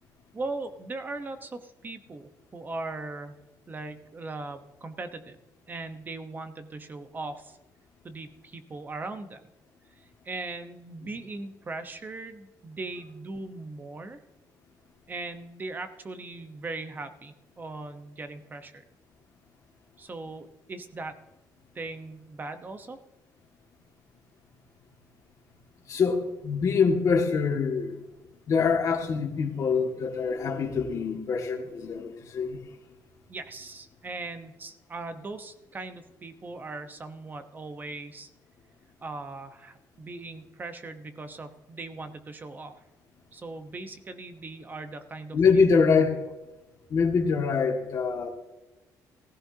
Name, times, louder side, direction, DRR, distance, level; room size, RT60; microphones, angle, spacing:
voice 1, 0.3-3.3 3.7-5.4 5.7-7.6 8.0-9.4 10.0-14.2 15.1-18.8 20.0-21.2 21.7-23.0 33.3-38.3 39.0-42.8 43.3-45.4, right 3 dB, 25° right, 9 dB, 1.1 m, -39 dB
voice 2, 25.9-27.9 28.5-32.6 45.3-46.2 46.9-48.3, left 5 dB, 50° left, 2 dB, 2.1 m, -24 dB
16.5 x 15.0 x 2.9 m, 1.0 s
cardioid pair, 125°, 7 cm